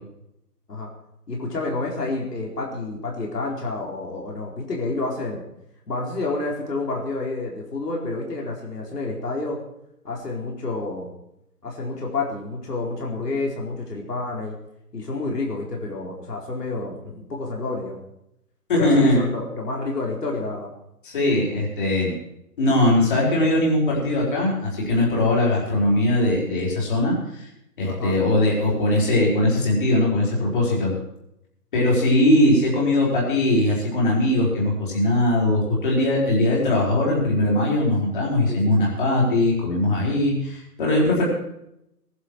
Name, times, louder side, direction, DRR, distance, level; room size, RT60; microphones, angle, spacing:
voice 1, 1.3-5.4 5.9-9.6 10.0-11.1 11.6-14.6 14.9-18.0 18.7-20.7 27.8-28.2 38.5-38.9, left 3 dB, 75° left, -2 dB, 4.5 m, -29 dB
voice 2, 18.7-19.3 21.0-22.1 22.6-27.5 27.8-30.9 31.7-41.3, left 1 dB, 30° left, -4 dB, 4.8 m, -20 dB
19.5 x 11.0 x 4.7 m, 0.81 s
hypercardioid pair, 170°, 48 cm